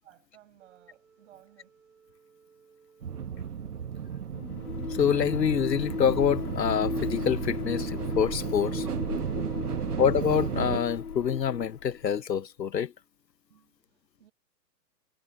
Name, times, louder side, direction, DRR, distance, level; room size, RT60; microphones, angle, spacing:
voice 1, 0.0-1.7 13.5-14.3, right 13 dB, 45° right, 5.4 m, -58 dB
Organ, 0.6-11.7, right 6 dB, ahead, 0.5 m, -61 dB
sound 1, 3.0-10.8, right 7 dB, 65° right, 1.6 m, -33 dB
sound 2, 4.3-12.1, left 5 dB, 65° left, 1.9 m, -36 dB
voice 2, 5.0-8.9 10.0-12.9, left 8 dB, 80° left, 0.8 m, -26 dB
figure-of-eight pair, 125°, 49 cm